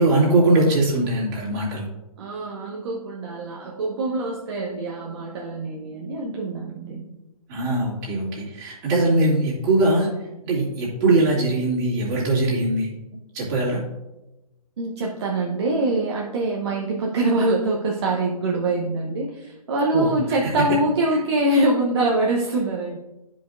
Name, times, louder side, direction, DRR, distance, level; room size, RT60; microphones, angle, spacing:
voice 1, 0.0-1.9 7.5-10.1 10.4-12.9 13.3-13.8 19.9-20.1 20.4-20.5, right 2 dB, 30° right, -5 dB, 2.5 m, -21 dB
voice 2, 2.2-7.0 14.8-23.0, right 2 dB, 45° right, -2 dB, 1.0 m, -24 dB
11.0 x 5.1 x 2.6 m, 0.98 s
figure-of-eight pair, 135°, 19 cm